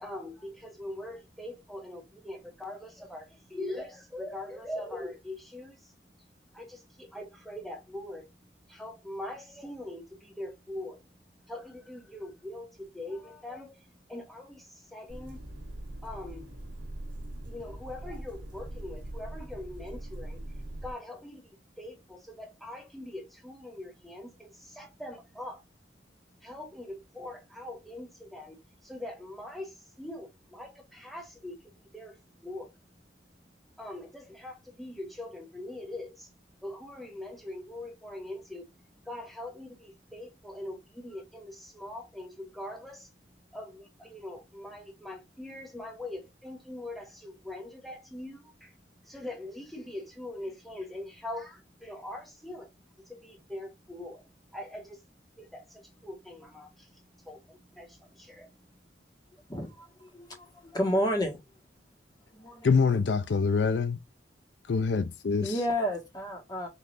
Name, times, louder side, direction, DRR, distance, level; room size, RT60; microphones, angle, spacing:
voice 1, 0.0-58.9, left 1 dB, ahead, 0.9 m, -43 dB
sound 1, 15.1-20.9, right 1 dB, 90° right, 1.4 m, -41 dB
voice 2, 59.5-61.4 62.3-62.7 65.4-66.7, equal, 20° left, 1.8 m, -31 dB
voice 3, 62.6-64.0 64.7-65.6, left 5 dB, 70° left, 0.5 m, -25 dB
5.3 x 3.2 x 2.6 m
head